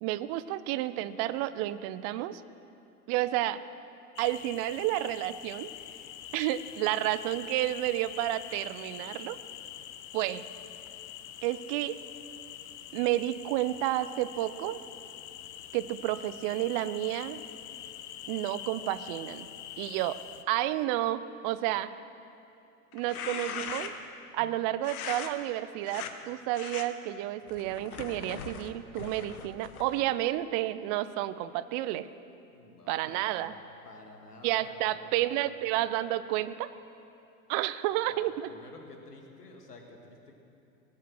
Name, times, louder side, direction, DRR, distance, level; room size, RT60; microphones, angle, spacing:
voice 1, 0.0-2.4 3.1-3.6 4.2-5.7 6.3-9.4 10.1-10.4 11.4-12.0 12.9-14.8 15.7-17.4 18.3-19.5 19.8-20.2 20.5-21.9 22.9-23.9 24.3-32.1 32.9-33.5 34.4-36.7 37.5-38.5, right 14 dB, 30° right, 15 dB, 0.4 m, -31 dB
sound 1, 4.2-20.4, left 11 dB, 50° left, 0.8 m, -45 dB
sound 2, 22.9-24.1 24.8-25.3 25.8-26.1 26.5-26.9 27.5-30.1, left 7 dB, 70° left, 1.2 m, -40 dB
voice 2, 32.5-35.7 38.0-40.3, left 2 dB, 90° left, 2 dB, 2.1 m, -51 dB
19.5 x 8.5 x 6.2 m, 2.8 s
hypercardioid pair, 95°, 45 cm